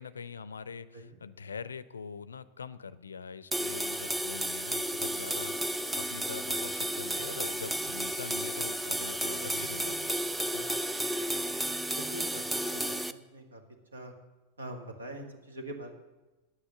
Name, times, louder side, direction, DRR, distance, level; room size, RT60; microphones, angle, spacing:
voice 1, 0.0-10.3 11.3-11.5, left 6 dB, 70° left, 17 dB, 0.5 m, -43 dB
sound 1, 3.5-13.1, right 1 dB, 5° right, 0.4 m, -33 dB
voice 2, 12.0-12.4 12.7-13.6 13.9-14.1 14.6-15.9, right 1 dB, 75° right, 5 dB, 1.7 m, -43 dB
9.6 x 8.9 x 7.1 m, 1.1 s
figure-of-eight pair, 90°, 0 cm